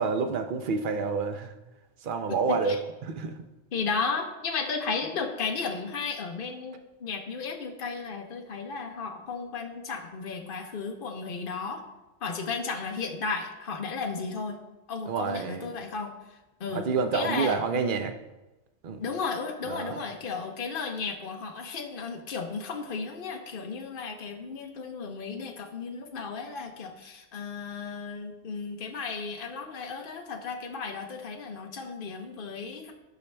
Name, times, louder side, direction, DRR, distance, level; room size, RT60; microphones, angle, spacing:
voice 1, 0.0-1.5 2.0-2.8 3.0-3.3 15.1-15.7 16.7-18.1 18.8-19.0 19.7-20.0, right 5 dB, 50° right, 8 dB, 0.7 m, -28 dB
voice 2, 2.3-2.8 3.7-11.8 12.2-14.6 14.9-16.1 16.6-17.6 19.0-32.9, left 4 dB, 45° left, 3 dB, 1.0 m, -34 dB
12.0 x 5.6 x 3.4 m, 1.1 s
omnidirectional pair, 1.3 m